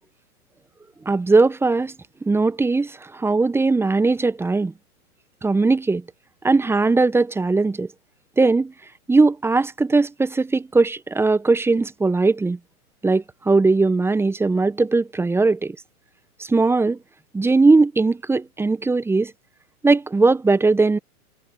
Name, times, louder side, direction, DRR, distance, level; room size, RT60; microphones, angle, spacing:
voice 1, 1.1-1.9 2.2-4.7 5.4-6.0 6.4-7.9 8.4-8.7 9.1-12.6 13.0-15.8 16.4-17.0 17.3-19.3 19.8-21.0, right 3 dB, 5° right, 1.0 m, -19 dB
figure-of-eight pair, 110°, 44 cm